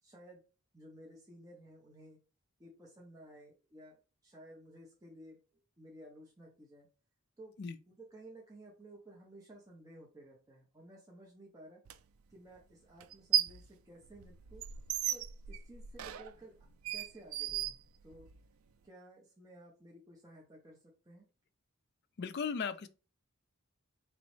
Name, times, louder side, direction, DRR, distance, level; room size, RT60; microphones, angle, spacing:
voice 1, 0.0-0.4 0.7-2.2 2.6-4.0 4.2-6.9 7.4-7.5 7.9-11.8 12.3-14.6 15.1-16.5 16.9-17.8 18.0-18.3 18.8-21.3, right 1 dB, 15° right, 0.7 m, -55 dB
sound 1, 11.9-12.0 13.0-13.7 14.0-18.4, right 11 dB, 75° right, 0.3 m, -36 dB
voice 2, 22.2-22.9, left 6 dB, 50° left, 0.4 m, -36 dB
4.0 x 3.0 x 3.1 m
head